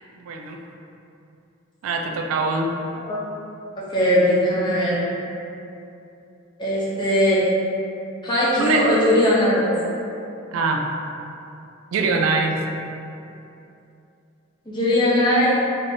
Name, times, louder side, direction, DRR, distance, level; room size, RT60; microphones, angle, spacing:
voice 1, 0.2-0.6 1.8-2.7 8.6-8.8 10.5-10.8 11.9-12.6, right 4 dB, 80° right, 2 dB, 0.3 m, -23 dB
voice 2, 3.8-5.0 6.6-7.4 8.2-9.7 14.7-15.5, left 1 dB, 20° left, -8 dB, 0.6 m, -19 dB
3.3 x 2.5 x 2.6 m, 2.7 s
head